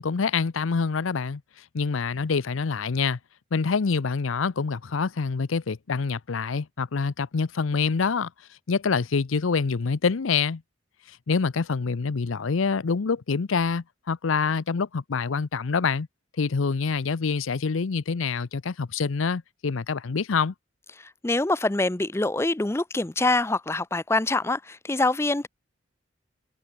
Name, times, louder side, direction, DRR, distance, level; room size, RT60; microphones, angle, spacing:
voice 1, 0.0-1.4 1.7-3.2 3.5-8.3 8.7-10.6 11.3-16.1 16.4-20.5, left 5 dB, 90° left, 0.6 m, -26 dB
voice 2, 21.0-25.5, left 2 dB, 15° left, 0.4 m, -25 dB
head